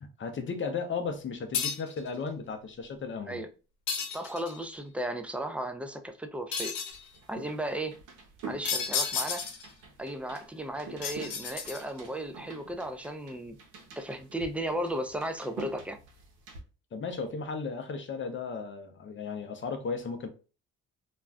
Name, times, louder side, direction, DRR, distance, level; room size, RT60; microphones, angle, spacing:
voice 1, 0.0-3.5 16.9-20.3, left 5 dB, 40° left, 0.6 m, -35 dB
sound 1, 1.5-2.0 3.9-4.6 6.5-7.0 8.6-9.7 11.0-12.1, left 6 dB, 90° left, 0.7 m, -32 dB
voice 2, 4.1-6.7 7.3-7.9 8.4-9.4 10.0-13.6 14.0-16.0, right 1 dB, 5° right, 0.3 m, -35 dB
sound 2, 6.9-16.6, right 4 dB, 90° right, 0.7 m, -47 dB
2.4 x 2.2 x 3.3 m
cardioid pair, 90°, 30 cm